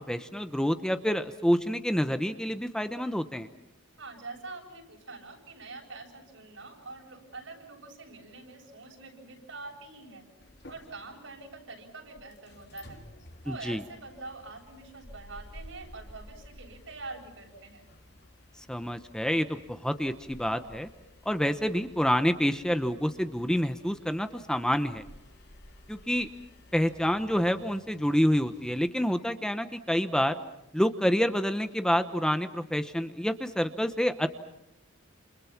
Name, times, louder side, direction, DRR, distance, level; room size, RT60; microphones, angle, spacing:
voice 1, 0.0-3.5 13.5-13.8 18.7-20.9 21.2-25.0 25.9-26.3 26.7-30.4 30.7-34.3, equal, 5° left, 9 dB, 0.9 m, -28 dB
voice 2, 4.0-10.3 10.7-13.0 13.4-17.9, right 3 dB, 75° right, 1 dB, 8.0 m, -45 dB
sound 1, 10.4-28.8, left 1 dB, 60° left, 3.2 m, -53 dB
29.5 x 28.5 x 6.0 m, 0.83 s
head